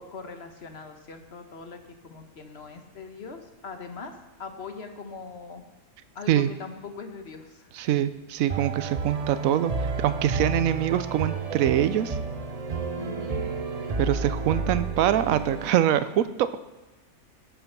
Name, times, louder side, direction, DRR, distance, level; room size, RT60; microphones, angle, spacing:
voice 1, 0.0-5.6 6.1-7.7 13.0-13.4, left 4 dB, 50° left, 6 dB, 1.5 m, -41 dB
voice 2, 7.7-12.2 14.0-16.6, right 11 dB, 75° right, 13 dB, 1.1 m, -24 dB
sound 1, 8.5-15.7, right 4 dB, 35° right, 0.7 m, -31 dB
18.5 x 7.0 x 5.9 m, 1.1 s
omnidirectional pair, 1.5 m